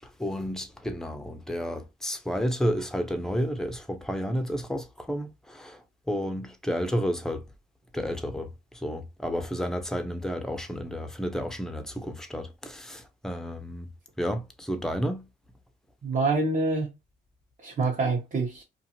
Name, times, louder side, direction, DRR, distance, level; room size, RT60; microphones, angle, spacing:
voice 1, 0.2-5.8 6.1-7.4 7.9-8.5 8.8-13.9 14.2-15.2, equal, 5° left, 0.5 m, -31 dB
voice 2, 16.0-16.9 17.6-18.6, right 3 dB, 40° right, 0.9 m, -26 dB
2.5 x 2.4 x 2.8 m
cardioid pair, 90°, 20 cm